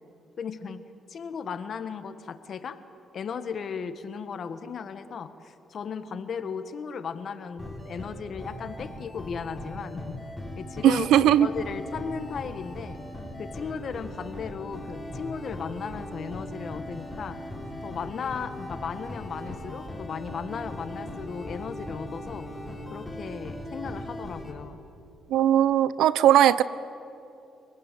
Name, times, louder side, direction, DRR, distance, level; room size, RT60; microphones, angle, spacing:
voice 1, 0.4-0.8 1.1-2.8 3.1-10.2 10.6-11.1 11.4-13.0 13.4-17.4 17.8-22.5 22.9-24.8, left 6 dB, 55° left, 10 dB, 1.5 m, -36 dB
sound 1, 7.6-24.5, left 1 dB, 5° left, 5.6 m, -39 dB
voice 2, 10.8-11.5 25.3-26.6, right 11 dB, 85° right, 17 dB, 0.7 m, -19 dB
26.0 x 19.0 x 9.3 m, 2.7 s
cardioid pair, 90°, 0 cm